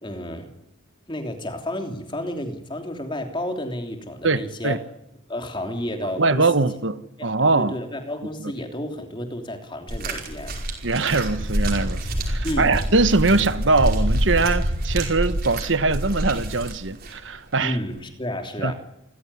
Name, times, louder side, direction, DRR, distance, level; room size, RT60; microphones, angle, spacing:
voice 1, 0.0-0.5 1.1-4.8 5.3-6.6 7.2-10.6 12.4-12.8 17.6-18.7, left 1 dB, 25° left, 3.1 m, -31 dB
voice 2, 4.2-4.8 6.2-7.7 10.8-17.8 18.6-18.7, right 3 dB, 65° right, 1.3 m, -22 dB
sound 1, 9.9-17.1 18.0-18.1, equal, 50° right, 5.2 m, -26 dB
27.5 x 15.5 x 9.9 m
head